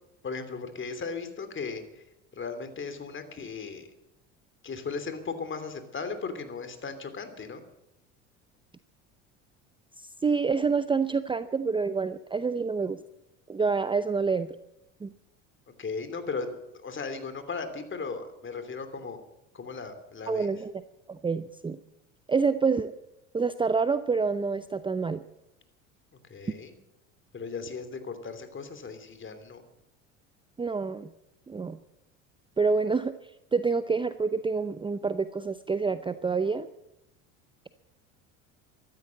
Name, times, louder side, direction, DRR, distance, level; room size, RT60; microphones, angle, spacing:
voice 1, 0.2-2.0 2.3-3.9 4.6-7.6 15.8-16.5 16.7-19.2 19.5-20.5 26.2-26.7 27.3-29.6, left 4 dB, 30° left, 9 dB, 3.0 m, -37 dB
voice 2, 10.0-13.0 13.5-14.5 15.0-15.1 20.3-20.7 21.1-21.8 22.3-22.9 23.3-25.2 30.6-31.1 31.5-31.8 32.6-33.1 33.5-36.7, right 4 dB, 15° right, 12 dB, 0.6 m, -27 dB
14.5 x 12.5 x 7.6 m, 0.89 s
hypercardioid pair, 80°, 38 cm